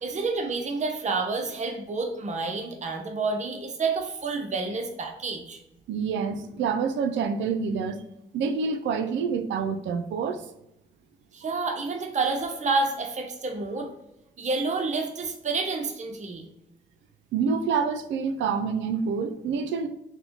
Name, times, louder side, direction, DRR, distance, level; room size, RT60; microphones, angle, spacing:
voice 1, 0.0-5.6 11.3-13.9 14.4-16.4, right 3 dB, 40° right, 3 dB, 0.7 m, -29 dB
voice 2, 5.9-8.0 8.3-10.4 17.3-19.9, right 5 dB, 85° right, 8 dB, 0.4 m, -27 dB
4.2 x 2.1 x 4.1 m, 0.84 s
supercardioid pair, 55°, 19 cm